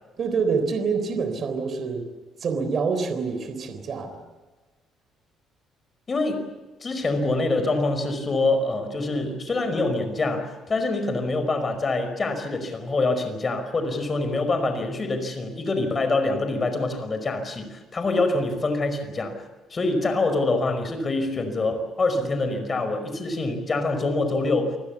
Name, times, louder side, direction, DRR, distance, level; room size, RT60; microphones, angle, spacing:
voice 1, 0.2-2.1 2.4-4.2, right 5 dB, 45° right, 8 dB, 3.7 m, -26 dB
voice 2, 6.1-6.5 6.8-19.3 19.7-24.8, left 2 dB, 30° left, 8 dB, 5.2 m, -25 dB
28.5 x 21.0 x 7.2 m, 1.2 s
cardioid pair, 120°, 0 cm